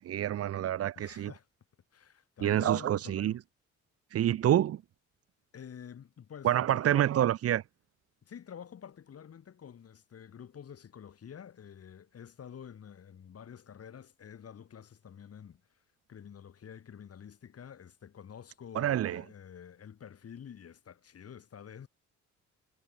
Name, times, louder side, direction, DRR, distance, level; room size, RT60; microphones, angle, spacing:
voice 1, 0.1-1.3 2.4-3.3 4.1-4.8 6.4-7.6 18.7-19.2, right 11 dB, 55° right, 0.7 m, -27 dB
voice 2, 1.0-1.5 1.9-3.4 5.5-7.1 8.3-15.6 16.1-21.9, left 8 dB, 50° left, 3.6 m, -48 dB
cardioid pair, 90°, 30 cm